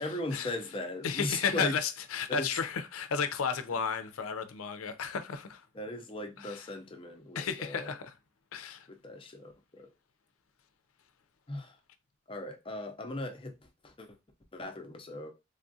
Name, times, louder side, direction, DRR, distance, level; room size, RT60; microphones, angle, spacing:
voice 1, 0.0-1.8 2.3-2.5 5.7-7.9 8.9-9.9 11.5-11.8 12.3-14.2 14.5-15.3, left 2 dB, 25° left, 0.5 m, -38 dB
voice 2, 1.0-5.6 6.4-6.6 7.3-8.1 8.5-8.9, left 6 dB, 85° left, 0.5 m, -33 dB
3.4 x 2.3 x 2.6 m
head